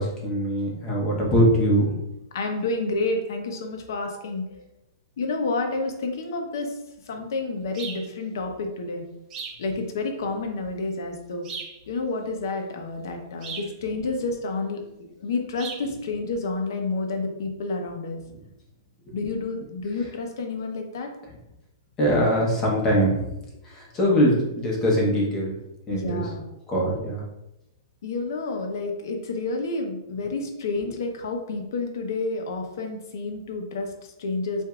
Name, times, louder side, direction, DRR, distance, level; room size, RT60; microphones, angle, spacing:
voice 1, 0.0-2.0 22.0-23.3 23.6-25.6 25.9-26.2 26.7-27.2, equal, 15° left, -3 dB, 0.9 m, -22 dB
voice 2, 2.3-4.6 5.2-6.8 7.0-9.0 9.6-11.5 11.9-18.2 19.1-21.1 25.9-26.4 28.0-34.6, left 3 dB, 55° left, 4 dB, 0.9 m, -29 dB
sound 1, 7.7-8.1 9.3-9.6 11.4-11.8 13.4-13.7 15.6-15.9, right 6 dB, 20° right, 0.5 m, -36 dB
8.0 x 2.7 x 2.4 m, 0.88 s
hypercardioid pair, 180°, 2 cm